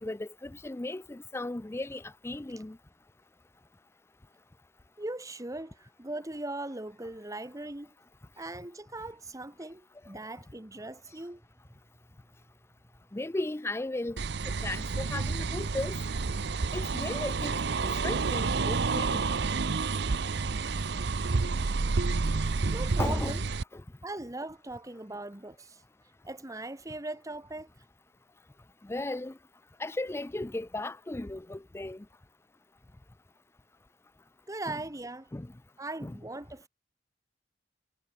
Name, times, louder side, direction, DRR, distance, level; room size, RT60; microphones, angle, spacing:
voice 1, 0.0-2.8 13.1-14.2 14.5-16.0 16.7-19.4 23.0-23.3 23.7-23.8 28.8-29.4 29.8-32.1 35.3-35.5 36.0-36.2, left 2 dB, 15° left, 0.4 m, -36 dB
voice 2, 5.0-7.9 8.4-11.4 22.7-23.4 24.0-25.8 26.2-27.7 34.5-35.3 35.8-36.7, right 2 dB, 20° right, 1.4 m, -39 dB
sound 1, 14.2-23.6, right 4 dB, 65° right, 0.7 m, -29 dB
head